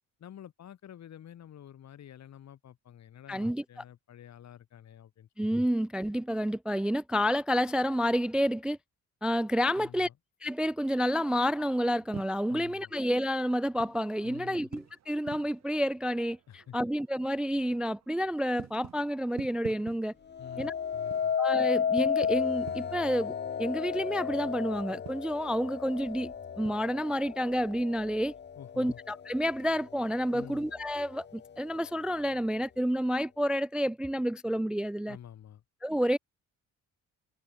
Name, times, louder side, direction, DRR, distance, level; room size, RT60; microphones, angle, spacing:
voice 1, 0.2-5.3 9.8-10.1 12.5-12.9 14.2-14.7 16.5-16.8 20.4-21.3 28.6-29.0 30.3-30.7 35.1-35.6, left 10 dB, 60° left, 2.8 m, -49 dB
voice 2, 3.3-3.8 5.4-8.8 9.2-10.1 10.4-20.1 20.6-20.7 21.4-28.3 28.8-35.2 35.8-36.2, equal, 5° right, 0.3 m, -29 dB
sound 1, 11.6-26.9, right 10 dB, 60° right, 1.9 m, -51 dB
sound 2, 20.3-29.5 30.0-30.5, left 7 dB, 35° left, 0.9 m, -33 dB
cardioid pair, 90°, 30 cm